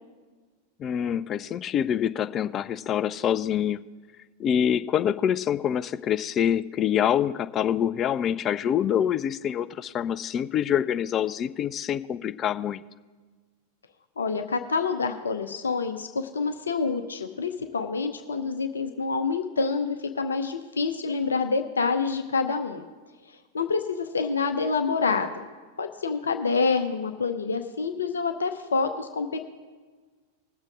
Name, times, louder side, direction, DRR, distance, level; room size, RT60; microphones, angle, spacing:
voice 1, 0.8-3.8 4.4-12.8, left 9 dB, 30° left, 14 dB, 0.4 m, -26 dB
voice 2, 14.2-22.8 23.5-25.3 25.8-29.4, left 4 dB, 70° left, 7 dB, 0.7 m, -27 dB
20.0 x 7.4 x 3.7 m, 1.4 s
figure-of-eight pair, 90°, 0 cm